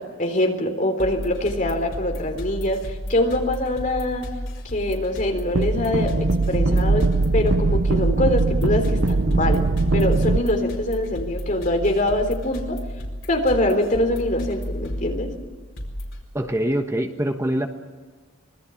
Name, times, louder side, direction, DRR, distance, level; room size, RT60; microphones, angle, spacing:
voice 1, 0.0-4.3 4.6-9.7 9.9-12.8 13.3-15.3, left 1 dB, 40° left, 4 dB, 3.7 m, -24 dB
sound 1, 1.0-16.2, equal, 80° left, 4.6 m, -33 dB
sound 2, 5.6-10.4, right 3 dB, 65° right, 0.8 m, -21 dB
voice 2, 16.3-17.7, right 1 dB, 15° right, 5 dB, 1.2 m, -24 dB
25.5 x 21.0 x 7.2 m, 1.4 s
head